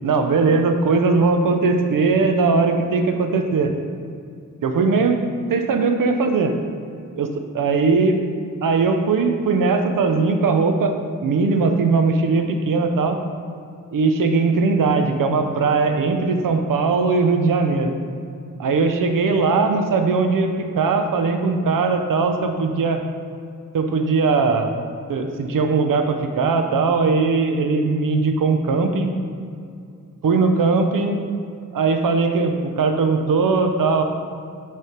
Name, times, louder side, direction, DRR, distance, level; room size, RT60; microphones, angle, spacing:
voice 1, 0.0-3.7 4.6-5.2 5.5-6.5 7.2-7.3 7.5-8.2 8.6-11.0 11.2-13.2 13.9-17.9 18.6-20.5 20.8-23.0 23.7-24.7 25.1-29.1 30.2-31.2 31.7-34.0, right 4 dB, 80° right, 5 dB, 0.6 m, -19 dB
6.4 x 3.4 x 4.3 m, 2.4 s
wide cardioid pair, 155°, 33 cm